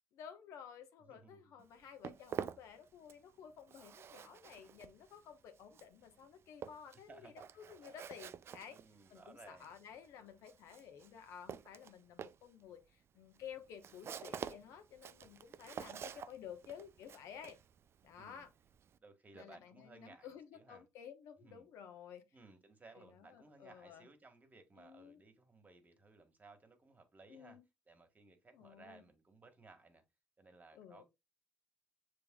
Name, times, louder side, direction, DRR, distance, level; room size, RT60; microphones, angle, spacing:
voice 1, 0.2-8.8 9.1-12.8 13.1-17.6 18.0-18.5 19.3-22.2 23.0-24.1 24.8-25.2 27.3-27.6 28.5-29.0 30.7-31.0, left 8 dB, 75° left, 1.0 m, -53 dB
voice 2, 1.0-1.6 6.9-7.3 8.7-9.7 18.2-18.5 19.0-20.8 21.4-21.7 22.3-27.6 27.8-30.0 30.4-31.0, right 3 dB, 30° right, 1.5 m, -60 dB
Walk footsteps, 1.6-3.3 3.6-19.0, right 8 dB, 50° right, 0.4 m, -49 dB
6.9 x 3.4 x 2.2 m
supercardioid pair, 65°, 5 cm